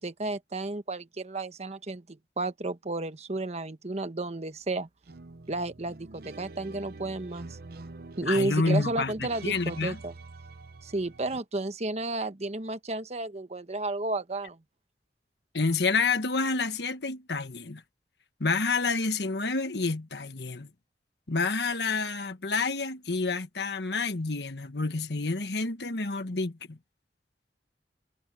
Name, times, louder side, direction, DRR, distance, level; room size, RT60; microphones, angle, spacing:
voice 1, 0.0-4.9 5.5-7.6 8.2-10.1 10.8-14.6, right 2 dB, 40° right, 1.2 m, -32 dB
sound 1, 5.0-11.4, right 3 dB, 60° right, 0.8 m, -46 dB
voice 2, 8.2-10.0 15.5-17.8 18.4-20.7 21.3-26.8, left 3 dB, 70° left, 1.4 m, -29 dB
head